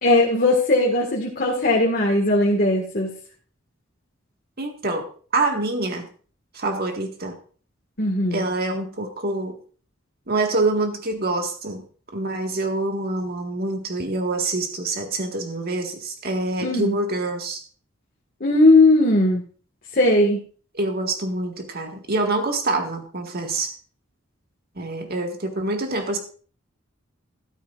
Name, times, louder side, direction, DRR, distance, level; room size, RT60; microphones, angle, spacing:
voice 1, 0.0-3.1 8.0-8.4 16.6-17.0 18.4-19.4 19.9-20.4, left 2 dB, 45° left, 1.9 m, -18 dB
voice 2, 4.6-5.1 5.3-6.1 6.5-7.4 8.3-9.6 10.3-11.8 12.1-17.6 20.7-23.7 24.8-26.2, right 2 dB, 50° right, 1.8 m, -26 dB
13.0 x 12.5 x 2.5 m
head